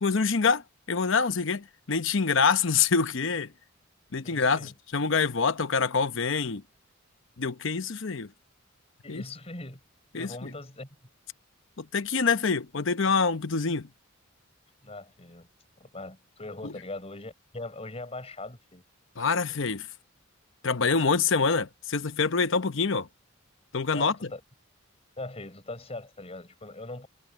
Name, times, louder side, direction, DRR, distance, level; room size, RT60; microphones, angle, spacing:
voice 1, 0.0-0.6 0.9-3.5 4.1-6.6 7.4-8.3 9.1-9.2 10.1-10.5 11.8-13.9 16.6-16.7 19.2-19.9 20.6-23.1 23.7-24.2, left 5 dB, 65° left, 0.9 m, -26 dB
voice 2, 4.2-4.7 9.0-9.8 10.1-10.9 14.8-15.5 15.8-18.8 23.9-24.4 25.2-27.1, left 2 dB, 30° left, 5.0 m, -40 dB
head